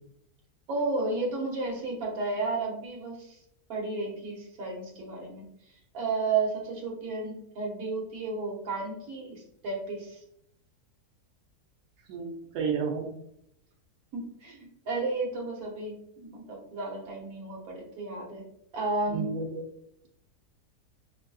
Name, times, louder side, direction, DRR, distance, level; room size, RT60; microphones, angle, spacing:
voice 1, 0.7-3.4 3.7-5.4 5.9-10.2 14.1-18.4 18.7-19.3, right 3 dB, 65° right, -1 dB, 1.4 m, -32 dB
voice 2, 12.1-13.1 19.1-19.6, right 5 dB, 90° right, 0 dB, 1.2 m, -31 dB
5.1 x 2.6 x 2.3 m, 0.75 s
omnidirectional pair, 1.7 m